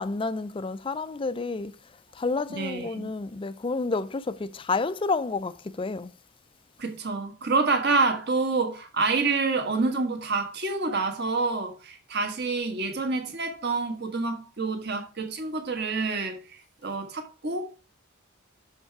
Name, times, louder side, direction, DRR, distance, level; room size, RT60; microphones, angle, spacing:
voice 1, 0.0-1.8 2.1-6.1, left 3 dB, 25° left, 0.4 m, -30 dB
voice 2, 2.5-3.1 6.8-17.7, right 3 dB, 50° right, 1.5 m, -27 dB
6.7 x 5.3 x 4.7 m
head